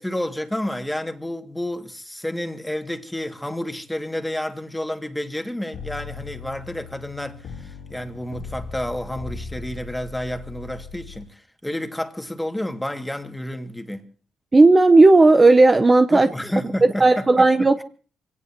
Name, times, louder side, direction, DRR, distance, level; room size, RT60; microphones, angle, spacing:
voice 1, 0.0-14.0 16.1-17.7, left 1 dB, 5° left, 2.2 m, -30 dB
sound 1, 5.7-11.2, left 5 dB, 80° left, 3.7 m, -38 dB
voice 2, 14.5-16.3 17.0-17.8, right 2 dB, 25° right, 0.9 m, -13 dB
25.5 x 18.0 x 3.0 m
cardioid pair, 90°, 0 cm